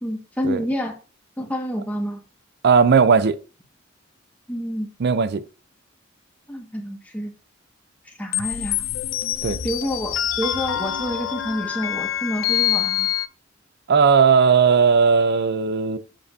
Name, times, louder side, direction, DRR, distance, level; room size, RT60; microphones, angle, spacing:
voice 1, 0.0-0.9 1.4-2.2 4.5-4.9 6.5-7.3 8.0-8.8 9.6-13.1, equal, 10° left, 1.5 m, -28 dB
voice 2, 2.6-3.4 5.0-5.4 9.4-9.6 13.9-16.0, right 5 dB, 55° right, 0.5 m, -17 dB
sound 1, 8.3-13.3, left 11 dB, 70° left, 0.5 m, -25 dB
7.6 x 6.8 x 2.6 m
head